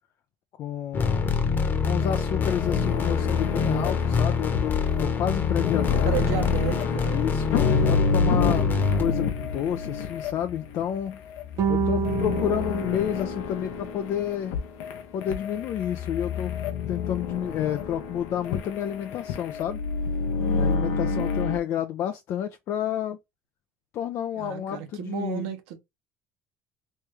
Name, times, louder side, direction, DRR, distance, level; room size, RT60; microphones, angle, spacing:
voice 1, 0.6-1.3 1.8-6.1 7.1-8.6 9.0-11.2 11.7-14.6 15.1-16.5 16.9-19.8 20.5-23.2 23.9-25.5, left 9 dB, 60° left, 0.5 m, -30 dB
sound 1, 0.9-9.0, left 5 dB, 35° left, 1.0 m, -25 dB
sound 2, 2.0-21.6, left 5 dB, 85° left, 0.9 m, -29 dB
voice 2, 6.0-7.2 20.4-21.3 24.4-25.8, right 11 dB, 85° right, 1.0 m, -33 dB
sound 3, 11.6-14.1, right 8 dB, 65° right, 0.6 m, -29 dB
3.2 x 3.2 x 3.3 m
supercardioid pair, 95°, 6 cm